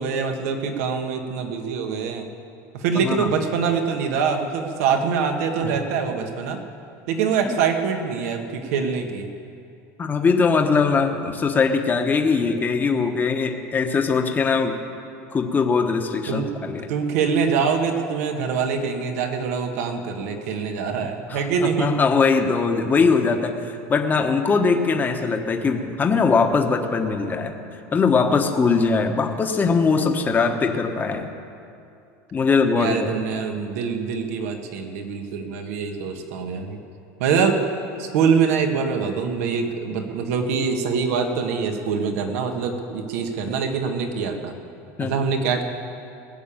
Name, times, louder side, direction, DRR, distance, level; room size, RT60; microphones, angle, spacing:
voice 1, 0.0-2.3 2.7-6.6 7.1-9.3 16.3-21.9 32.7-36.8 37.2-37.6 38.0-44.6 45.0-45.6, right 6 dB, 80° right, 5 dB, 1.5 m, -24 dB
voice 2, 10.0-14.8 15.3-16.9 21.3-27.5 27.9-31.3 32.3-33.1 43.5-43.6 45.0-45.2, left 4 dB, 20° left, 4 dB, 1.1 m, -21 dB
19.0 x 6.9 x 8.9 m, 2.6 s
supercardioid pair, 120°, 8 cm